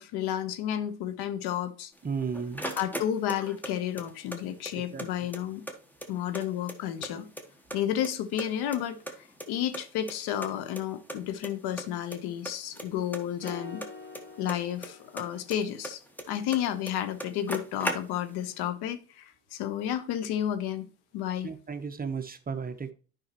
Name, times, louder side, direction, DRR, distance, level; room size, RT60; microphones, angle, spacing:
voice 1, 0.0-1.9 2.8-5.6 6.1-7.2 7.7-13.8 14.4-16.0 16.3-20.9 21.1-21.5, left 10 dB, 65° left, 1.1 m, -31 dB
sound 1, 2.0-3.7 4.0-5.1 5.3-5.4 5.7-7.1 7.4-8.1 8.4-9.8 10.1-10.2 10.4-10.5 10.8-10.9 11.1-11.5 11.8-12.2 12.4-14.9 15.2-16.6 16.9-17.0 17.2-18.4, equal, 5° left, 1.2 m, -37 dB
voice 2, 2.0-2.7 4.7-5.3 21.4-22.9, right 5 dB, 20° right, 0.9 m, -35 dB
sound 2, 13.4-15.7, left 3 dB, 25° left, 1.6 m, -45 dB
10.0 x 5.5 x 3.0 m
supercardioid pair, 85°, 42 cm